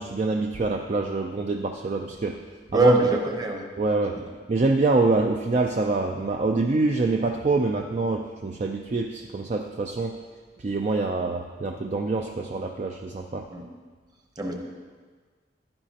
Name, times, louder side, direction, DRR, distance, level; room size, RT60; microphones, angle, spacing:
voice 1, 0.0-2.4 2.7-2.9 3.8-4.2 4.5-10.2 10.6-13.5, right 3 dB, 40° right, 3 dB, 0.4 m, -25 dB
voice 2, 2.7-3.7 13.5-13.6 14.4-14.5, right 1 dB, 20° right, 2 dB, 0.9 m, -22 dB
10.5 x 9.7 x 2.9 m, 1.5 s
head